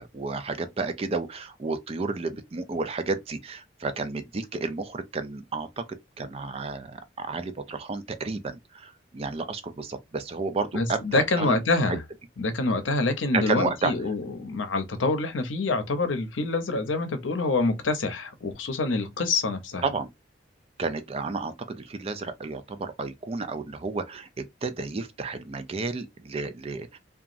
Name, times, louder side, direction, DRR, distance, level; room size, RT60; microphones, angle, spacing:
voice 1, 0.0-5.8 6.2-11.6 13.3-13.9 19.8-20.1 20.8-27.0, right 3 dB, 30° right, 0.4 m, -32 dB
voice 2, 10.7-12.0 12.4-19.8, left 3 dB, 85° left, 0.6 m, -26 dB
2.9 x 2.3 x 2.5 m
head